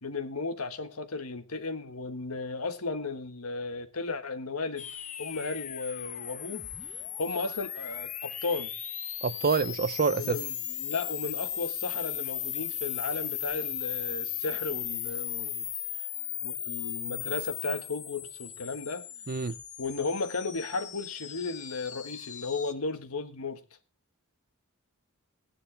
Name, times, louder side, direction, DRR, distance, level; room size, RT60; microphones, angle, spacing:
voice 1, 0.0-4.9 5.2-6.7 7.2-8.7 10.2-15.7 16.4-19.0 19.8-23.6, left 3 dB, 85° left, 1.5 m, -35 dB
sound 1, 4.8-22.7, left 10 dB, 35° left, 0.9 m, -37 dB
voice 2, 9.2-10.4 19.3-19.6, right 5 dB, 45° right, 0.6 m, -27 dB
16.0 x 10.0 x 3.4 m
head